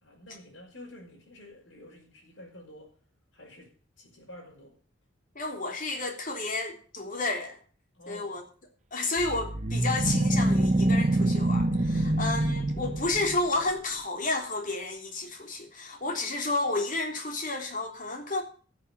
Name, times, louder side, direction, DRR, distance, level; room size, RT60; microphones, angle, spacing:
voice 1, 0.0-2.9 3.3-4.8 7.9-8.4 16.0-16.3, left 1 dB, 70° left, 5.5 m, -49 dB
voice 2, 5.3-7.6 8.1-8.4 8.9-18.4, left 2 dB, 45° left, 3.2 m, -31 dB
sound 1, 9.2-13.6, right 1 dB, 40° right, 1.2 m, -25 dB
13.5 x 7.8 x 7.3 m
head